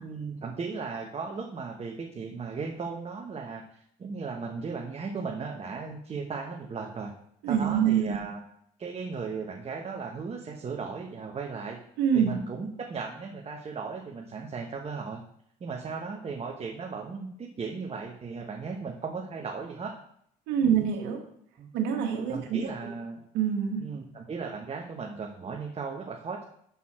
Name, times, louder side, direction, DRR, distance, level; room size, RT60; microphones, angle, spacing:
voice 1, 0.0-7.1 7.5-8.4 8.8-11.8 12.1-15.2 15.6-19.9 20.6-20.8 21.6-21.7 22.3-23.2 23.8-26.4, right 5 dB, 35° right, 0 dB, 1.1 m, -36 dB
voice 2, 7.4-8.2 12.0-12.3 20.5-21.2 21.7-22.7 23.3-23.8, right 8 dB, 75° right, 2 dB, 1.6 m, -25 dB
6.2 x 5.5 x 4.3 m, 0.68 s
supercardioid pair, 75°, 18 cm